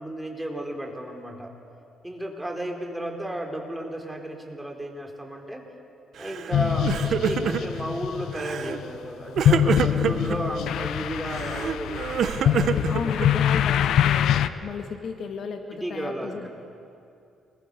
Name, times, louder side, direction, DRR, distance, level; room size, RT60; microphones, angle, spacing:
voice 1, 0.0-1.5 2.0-5.6 6.2-13.5 15.7-16.5, right 1 dB, 5° right, 2 dB, 4.1 m, -34 dB
Crying sobbing, 6.2-6.5 6.8-7.8 8.3-8.8 9.4-10.4 11.3-13.5, right 8 dB, 65° right, 1.1 m, -27 dB
sound 1, 6.5-14.5, left 10 dB, 75° left, 0.8 m, -24 dB
voice 2, 12.9-16.5, left 5 dB, 60° left, 5 dB, 2.0 m, -34 dB
30.0 x 22.0 x 6.9 m, 2.5 s
cardioid pair, 90°, 0 cm